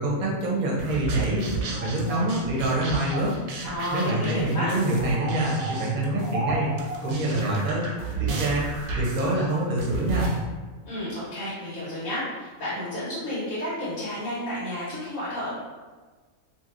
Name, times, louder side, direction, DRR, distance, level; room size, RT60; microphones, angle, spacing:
voice 1, 0.0-1.4 1.8-3.3 3.9-6.7 7.0-7.9 8.2-8.6 8.9-10.3, right 1 dB, 40° right, -4 dB, 0.7 m, -25 dB
sound 1, 0.8-10.4, right 4 dB, 85° right, 1.0 m, -33 dB
voice 2, 3.6-4.7 10.8-15.5, left 1 dB, 85° left, -10 dB, 1.5 m, -31 dB
3.1 x 2.7 x 2.5 m, 1.3 s
omnidirectional pair, 1.4 m